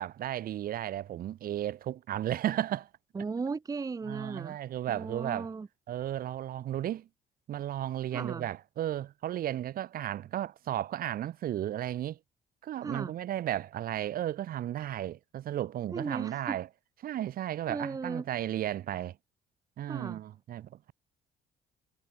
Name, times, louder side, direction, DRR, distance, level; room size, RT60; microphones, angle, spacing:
voice 1, 0.0-2.9 4.1-5.5 5.9-7.1 7.5-12.2 12.6-16.7 17.0-19.2 19.8-20.9, right 12 dB, 60° right, 1.5 m, -34 dB
voice 2, 3.1-4.6 4.9-5.7 8.1-8.5 12.8-13.1 15.9-16.6 17.7-18.3 19.9-20.2, right 4 dB, 20° right, 0.8 m, -36 dB
cardioid pair, 110°, 17 cm